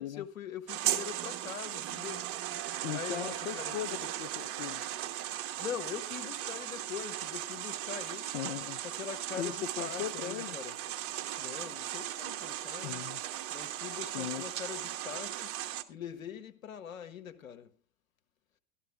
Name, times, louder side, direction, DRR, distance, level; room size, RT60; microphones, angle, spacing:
voice 1, 0.0-2.3 2.9-4.2 5.5-8.4 8.8-10.8 11.4-13.1 13.5-15.5 15.9-17.7, left 8 dB, 80° left, 1.5 m, -43 dB
sound 1, 0.7-15.8, right 12 dB, 35° right, 1.1 m, -37 dB
voice 2, 2.8-4.8 8.3-8.8 9.4-10.6 12.8-13.2 13.9-14.4, left 12 dB, 55° left, 0.8 m, -38 dB
13.0 x 12.5 x 3.4 m
hypercardioid pair, 95°, 41 cm